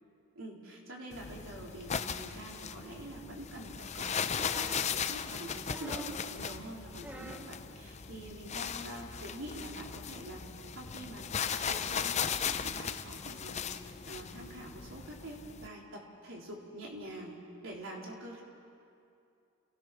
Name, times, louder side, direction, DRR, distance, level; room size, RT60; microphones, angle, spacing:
voice 1, 0.4-10.4 10.7-17.4 17.6-18.4, right 1 dB, 70° right, -2 dB, 3.9 m, -46 dB
sound 1, 1.1-15.7, left 7 dB, 35° left, 0.6 m, -37 dB
sound 2, 4.4-4.9 5.7-6.3 7.0-7.5 8.7-8.8, right 1 dB, 5° right, 0.8 m, -46 dB
29.0 x 17.0 x 6.1 m, 2.6 s
head